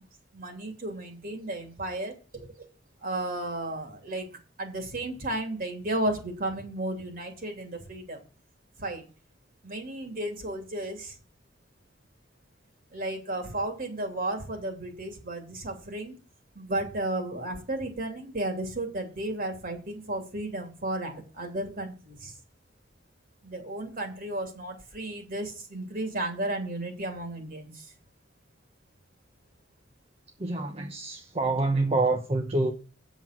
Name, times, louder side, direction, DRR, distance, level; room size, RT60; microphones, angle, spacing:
voice 1, 0.3-2.7 3.0-4.3 4.6-8.2 8.8-9.0 9.6-11.2 12.9-16.2 16.5-22.3 23.4-27.9, right 1 dB, 50° right, 2.8 m, -33 dB
voice 2, 30.4-32.7, right 2 dB, 30° right, 0.9 m, -26 dB
8.2 x 7.4 x 5.9 m
head